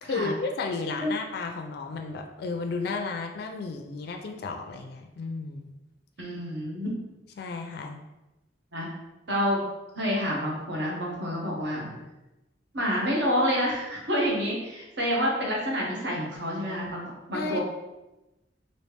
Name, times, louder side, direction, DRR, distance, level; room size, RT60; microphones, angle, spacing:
voice 1, 0.0-5.7 7.4-8.0 17.3-17.6, left 4 dB, 60° left, 4 dB, 0.3 m, -33 dB
voice 2, 6.2-6.9 8.7-8.9 9.3-9.6 9.9-12.0 12.7-17.6, equal, 70° right, -3 dB, 1.0 m, -28 dB
3.1 x 2.8 x 3.2 m, 0.99 s
head